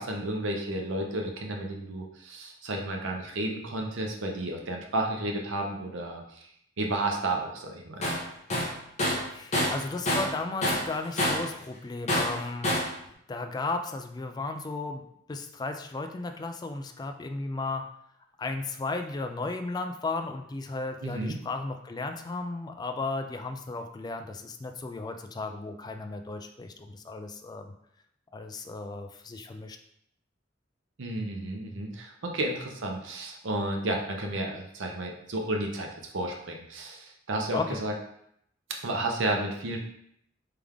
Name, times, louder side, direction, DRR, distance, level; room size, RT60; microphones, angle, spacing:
voice 1, 0.0-6.5 6.8-8.0 21.0-21.4 31.0-35.9 36.1-37.9 38.8-39.8, right 1 dB, 90° right, 1 dB, 0.7 m, -32 dB
Tools, 8.0-8.2 8.5-10.4 10.6-11.5 12.1-12.9, left 1 dB, 35° left, 0.9 m, -27 dB
voice 2, 9.3-12.7 13.3-15.0 15.3-17.8 18.4-27.7 28.3-29.8 37.5-37.8, left 3 dB, 20° left, 5 dB, 0.3 m, -35 dB
3.5 x 3.4 x 3.5 m, 0.72 s
head